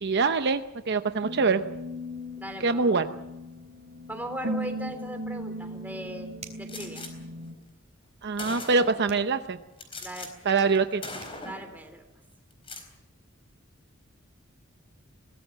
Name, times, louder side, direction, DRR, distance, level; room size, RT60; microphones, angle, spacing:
voice 1, 0.0-1.6 2.6-3.1 8.2-9.6 10.4-11.0, right 4 dB, 55° right, 8 dB, 0.8 m, -24 dB
sound 1, 1.2-7.5, equal, 80° right, 3.3 m, -38 dB
voice 2, 2.4-3.1 4.1-6.3 6.6-7.0 10.0-10.7 11.4-12.0, right 1 dB, 10° right, 5 dB, 3.3 m, -39 dB
sound 2, 6.4-6.8 9.0-9.3 10.9-11.0 11.2-11.4, right 6 dB, 35° right, 3.3 m, -46 dB
Gunshot gunfire, 6.7-7.1 7.9-8.0 8.4-9.1 9.8-10.3 10.6-10.8 11.0-11.7 12.5-12.9, left 3 dB, 25° left, 4.2 m, -39 dB
23.0 x 18.0 x 7.5 m, 0.94 s
head